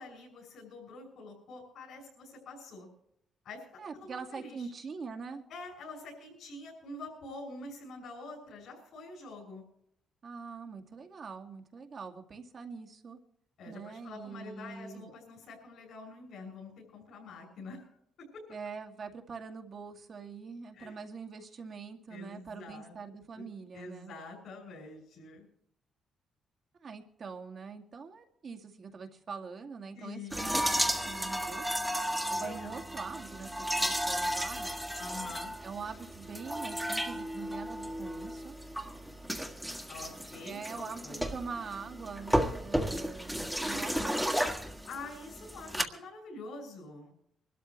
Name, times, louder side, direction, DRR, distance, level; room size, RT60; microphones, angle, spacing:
voice 1, 0.0-2.9 3.4-4.7 5.5-9.6 13.6-18.5 20.7-21.0 22.1-22.9 23.3-23.5 23.7-25.5 29.9-30.5 32.3-32.8 35.0-35.5 39.9-41.2 44.9-47.1, left 3 dB, 70° left, -3 dB, 6.6 m, -46 dB
voice 2, 3.8-5.5 10.2-13.2 13.7-15.1 18.5-24.1 26.8-31.7 32.3-34.8 35.6-38.6 40.4-44.6, right 5 dB, 45° right, 4 dB, 2.1 m, -44 dB
Water onto frying pan, 30.3-45.8, equal, ahead, 1.7 m, -34 dB
24.5 x 13.0 x 3.2 m, 0.74 s
cardioid pair, 105°, 0 cm